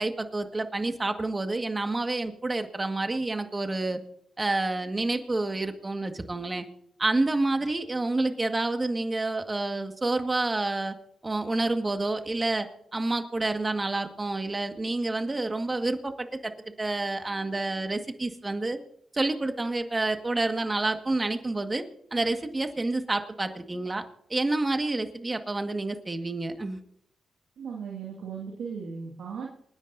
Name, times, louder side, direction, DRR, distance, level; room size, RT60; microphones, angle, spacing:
voice 1, 0.0-4.0 4.4-6.7 7.0-10.9 11.2-12.7 12.9-16.5 16.8-18.8 19.1-21.8 22.1-24.0 24.3-26.8, right 2 dB, 30° right, 7 dB, 1.9 m, -28 dB
voice 2, 27.6-29.6, right 6 dB, 80° right, -2 dB, 2.2 m, -37 dB
28.0 x 10.0 x 2.8 m, 0.71 s
supercardioid pair, 45°, 0 cm